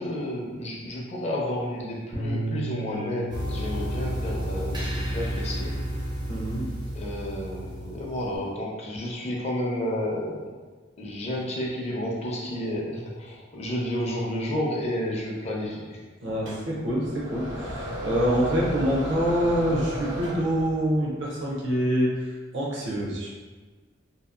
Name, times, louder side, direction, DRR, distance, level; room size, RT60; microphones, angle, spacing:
voice 1, 0.0-5.8 6.9-10.5 11.0-16.0, left 1 dB, 35° left, -2 dB, 0.5 m, -31 dB
Bass guitar, 2.1-8.4, equal, 85° left, 0.7 m, -38 dB
sound 1, 3.3-8.4, right 1 dB, 25° right, 0.4 m, -31 dB
voice 2, 6.3-6.7 16.2-23.3, equal, 70° right, -4 dB, 0.5 m, -26 dB
sound 2, 16.5-20.9, equal, 90° right, 0.9 m, -35 dB
2.7 x 2.3 x 2.3 m, 1.4 s
head